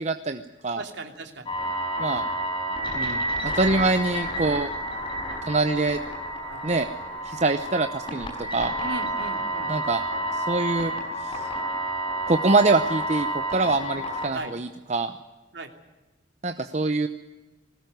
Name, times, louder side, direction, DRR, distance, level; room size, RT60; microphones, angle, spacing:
voice 1, 0.0-0.8 2.0-2.2 2.9-4.7 5.5-6.0 6.6-6.9 7.2-8.7 9.7-10.0 10.3-11.5 12.3-15.1 16.4-17.1, right 3 dB, 35° right, 8 dB, 0.8 m, -25 dB
voice 2, 0.7-1.5 6.5-6.6 8.8-9.7 14.3-14.5 15.5-15.7, right 2 dB, 60° right, 5 dB, 3.0 m, -37 dB
sound 1, 1.5-14.3, right 1 dB, 25° left, 5.3 m, -30 dB
21.0 x 18.5 x 9.4 m, 1.1 s
head